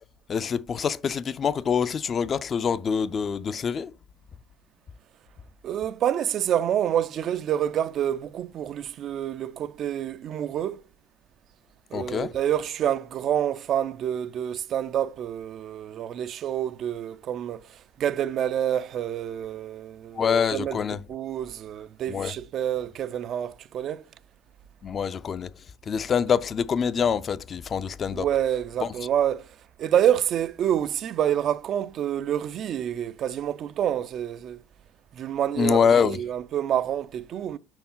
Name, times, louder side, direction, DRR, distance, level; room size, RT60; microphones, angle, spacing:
voice 1, 0.3-3.9 11.9-12.3 20.2-21.0 22.1-22.3 24.8-25.5 25.9-28.3 28.8-28.9 35.6-36.2, left 6 dB, 40° left, 0.4 m, -25 dB
voice 2, 5.6-10.8 11.9-24.1 28.1-34.6 35.1-37.6, right 10 dB, 50° right, 0.4 m, -28 dB
5.4 x 4.5 x 5.5 m
hypercardioid pair, 80°, 0 cm